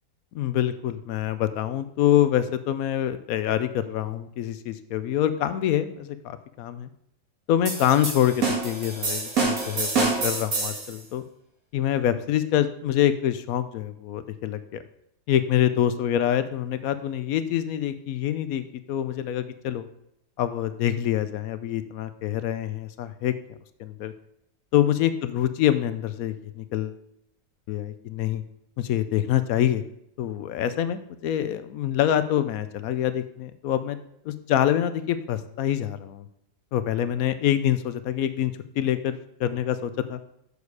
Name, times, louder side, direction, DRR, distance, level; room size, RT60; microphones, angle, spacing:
voice 1, 0.3-6.9 7.5-11.2 11.7-14.6 15.3-19.8 20.4-23.3 23.8-24.1 24.7-27.0 27.7-28.4 28.8-29.8 30.2-34.0 34.3-36.3 36.7-40.2, left 11 dB, 70° left, 12 dB, 0.8 m, -25 dB
sound 1, 7.7-10.9, right 4 dB, 55° right, 2.1 m, -26 dB
7.1 x 6.5 x 4.7 m, 0.76 s
omnidirectional pair, 1.9 m